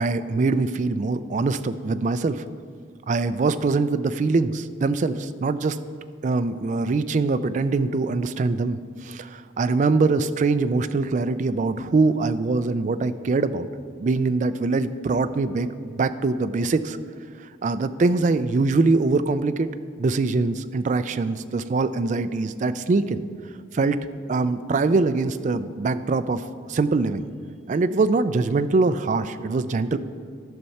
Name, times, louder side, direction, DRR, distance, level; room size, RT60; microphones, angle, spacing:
voice 1, 0.0-2.4 3.1-5.8 6.2-13.7 14.0-17.0 17.6-19.7 20.0-23.3 23.7-24.0 24.3-26.4 26.7-27.3 27.7-30.0, right 3 dB, 40° right, 12 dB, 0.3 m, -23 dB
13.0 x 5.7 x 4.2 m, 2.1 s
head